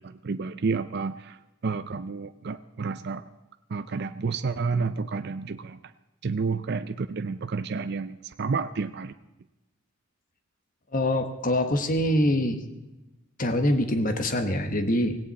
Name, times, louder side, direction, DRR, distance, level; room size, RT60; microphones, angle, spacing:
voice 1, 0.0-3.2 3.7-5.8 6.2-9.1, right 4 dB, 50° right, 10 dB, 0.5 m, -30 dB
voice 2, 10.9-12.6 13.4-15.2, left 1 dB, 40° left, 7 dB, 1.4 m, -24 dB
17.0 x 17.0 x 4.2 m, 1.0 s
head